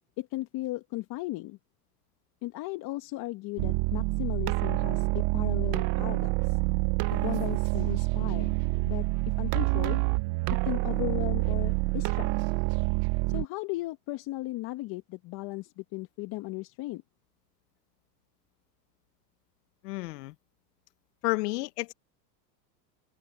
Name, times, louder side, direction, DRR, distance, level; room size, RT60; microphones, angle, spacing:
voice 1, 0.2-1.6 2.4-6.6 7.1-8.6 8.9-9.1 9.4-10.0 10.6-12.3 13.3-17.0, left 19 dB, 45° left, 2.0 m, -36 dB
sound 1, 3.6-13.4, right 24 dB, 50° right, 1.1 m, -27 dB
voice 2, 19.8-20.3 21.2-21.9, left 22 dB, 70° left, 1.4 m, -31 dB
open air
supercardioid pair, 115°, 48 cm